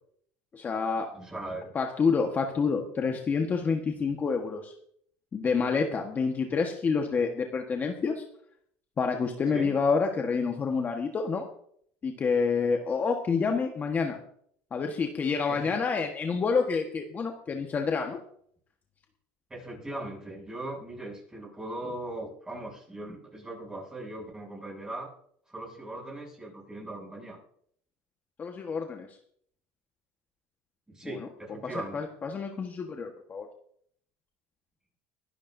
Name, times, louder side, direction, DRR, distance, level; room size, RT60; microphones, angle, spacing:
voice 1, 0.5-1.1 1.7-4.7 5.3-8.2 9.0-11.4 12.0-14.2 14.7-18.2 28.4-29.1 31.1-31.3 31.6-33.5, left 5 dB, 30° left, 3 dB, 1.4 m, -28 dB
voice 2, 1.1-1.8 4.1-4.2 9.5-9.8 15.5-15.8 19.5-25.1 25.5-27.4 30.9-32.0, right 1 dB, 10° right, -2 dB, 7.6 m, -39 dB
23.0 x 12.0 x 2.7 m, 0.65 s
supercardioid pair, 105°, 6 cm